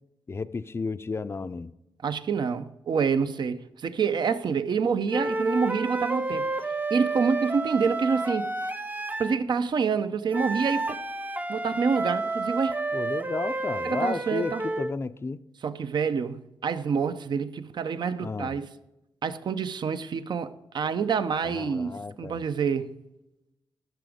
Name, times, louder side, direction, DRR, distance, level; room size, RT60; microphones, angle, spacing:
voice 1, 0.3-1.7 12.9-15.4 18.2-18.5 21.4-22.4, left 4 dB, 30° left, 0.5 m, -33 dB
voice 2, 2.0-6.5 6.9-8.5 9.2-11.0 11.5-12.8 13.8-14.6 15.6-18.7 19.2-22.9, right 6 dB, 60° right, 0.7 m, -27 dB
sound 1, 5.1-9.4 10.3-14.9, right 2 dB, 20° right, 0.6 m, -30 dB
12.5 x 6.0 x 5.0 m
cardioid pair, 70°, 9 cm